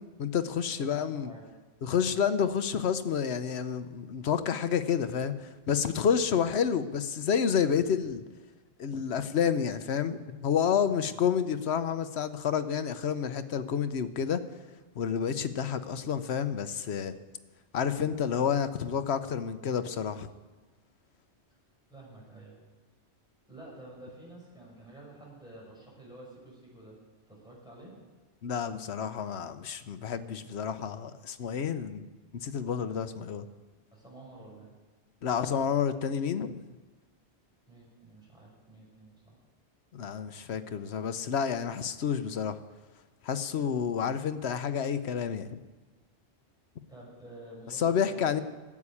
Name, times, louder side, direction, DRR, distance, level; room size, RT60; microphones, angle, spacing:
voice 1, 0.2-1.3 1.8-8.2 8.8-14.4 15.0-17.1 17.7-20.3 28.4-32.1 32.3-33.5 35.2-36.6 39.9-42.6 43.2-45.6 47.7-48.4, left 7 dB, 70° left, 11 dB, 1.0 m, -29 dB
voice 2, 0.7-1.4 2.1-2.3 10.9-11.2 21.9-22.6 23.5-27.0 27.3-27.9 33.9-34.7 37.7-39.4 46.9-48.3, right 1 dB, 5° right, -4 dB, 5.9 m, -50 dB
12.0 x 8.5 x 9.8 m, 1.3 s
omnidirectional pair, 1.2 m